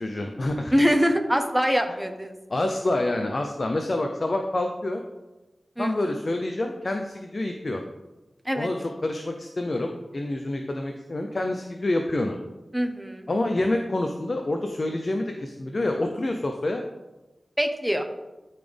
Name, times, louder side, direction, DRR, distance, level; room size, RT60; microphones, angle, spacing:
voice 1, 0.0-0.7 2.5-5.0 5.8-7.8 8.5-8.8 9.0-12.4 13.3-16.8, left 2 dB, 50° left, 4 dB, 0.6 m, -27 dB
voice 2, 0.7-2.3 5.8-6.1 8.4-8.7 12.7-13.3 17.6-18.1, equal, 5° right, 5 dB, 0.9 m, -24 dB
12.0 x 4.2 x 3.4 m, 1.1 s
cardioid pair, 45°, 0 cm